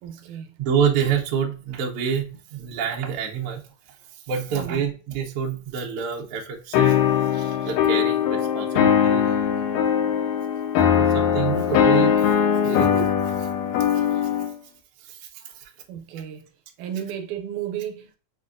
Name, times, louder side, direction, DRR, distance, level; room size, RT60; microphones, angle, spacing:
voice 1, 0.0-0.5 4.5-4.8 7.4-7.6 8.6-8.7 10.0-10.2 15.9-16.5 16.8-18.2, right 9 dB, 85° right, 2.0 m, -34 dB
voice 2, 0.6-3.6 4.3-7.0 7.3-9.2 10.9-12.1 12.6-13.1 13.9-14.3 15.1-15.4, right 7 dB, 70° right, 1.5 m, -27 dB
sound 1, 6.7-14.5, left 8 dB, 80° left, 1.6 m, -20 dB
5.9 x 2.2 x 2.4 m
omnidirectional pair, 3.4 m